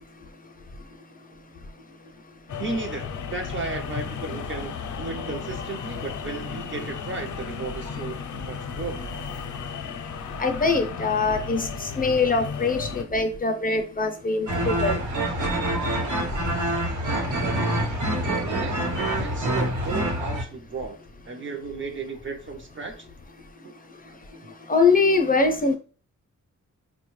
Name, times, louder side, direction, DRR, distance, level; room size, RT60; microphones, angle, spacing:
sound 1, 2.5-13.0, left 5 dB, 80° left, 0.5 m, -34 dB
voice 1, 2.6-9.0 17.6-17.8 18.2-21.0 21.3-23.1 23.6-23.7, right 4 dB, 40° right, 4 dB, 0.5 m, -35 dB
voice 2, 10.4-15.0 24.7-25.8, left 4 dB, 30° left, 5 dB, 0.5 m, -23 dB
sound 2, 14.5-20.4, right 1 dB, 80° right, 1.1 m, -26 dB
4.9 x 2.2 x 3.0 m, 0.37 s
wide cardioid pair, 140°, 30 cm